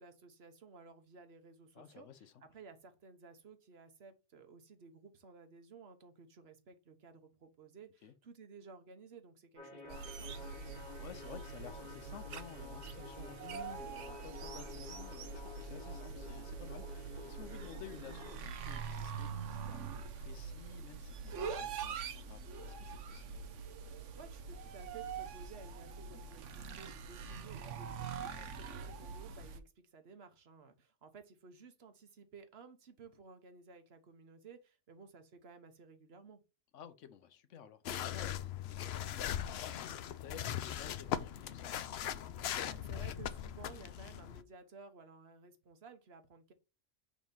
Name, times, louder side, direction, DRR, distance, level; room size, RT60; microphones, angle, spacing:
voice 1, 0.0-10.8 24.1-36.4 42.4-46.5, right 5 dB, 60° right, 1.3 m, -56 dB
voice 2, 1.7-2.3 8.0-8.1 11.0-23.4 28.3-28.7 36.7-41.8, left 8 dB, 80° left, 1.1 m, -53 dB
sound 1, 9.6-18.4, left 3 dB, 40° left, 2.1 m, -51 dB
sound 2, 9.9-29.6, right 6 dB, 80° right, 1.1 m, -44 dB
sound 3, 37.9-44.4, left 10 dB, 65° left, 0.8 m, -39 dB
6.6 x 3.1 x 5.3 m
omnidirectional pair, 1.2 m